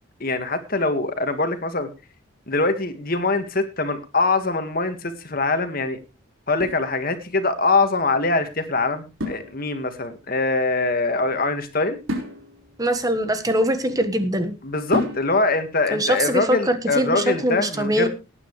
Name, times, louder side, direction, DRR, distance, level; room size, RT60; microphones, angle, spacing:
voice 1, 0.2-1.9 2.5-6.0 6.5-12.0 14.6-18.1, left 3 dB, 45° left, 8 dB, 1.8 m, -23 dB
sound 1, 6.6-7.6 9.2-10.1 12.1-14.1 14.9-15.7, left 1 dB, 80° right, 4.7 m, -32 dB
voice 2, 12.8-14.5 15.9-18.1, equal, 15° right, 9 dB, 1.3 m, -22 dB
18.5 x 9.7 x 3.3 m, 0.30 s
head